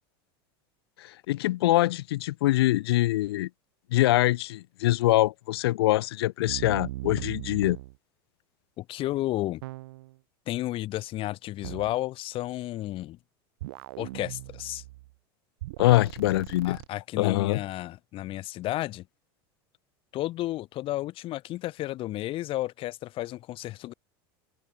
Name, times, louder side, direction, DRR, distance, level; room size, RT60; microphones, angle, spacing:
voice 1, 1.3-3.5 3.9-7.8 15.8-16.8 17.2-17.6, left 16 dB, 85° left, 0.6 m, -24 dB
sound 1, 6.5-8.0 9.6-10.2 11.6-12.0 13.6-15.1 15.6-16.9, right 19 dB, 80° right, 0.4 m, -39 dB
voice 2, 8.8-9.6 10.5-13.2 14.0-14.8 16.6-19.1 20.1-23.9, left 16 dB, 45° left, 1.2 m, -32 dB
open air
supercardioid pair, 115°, 13 cm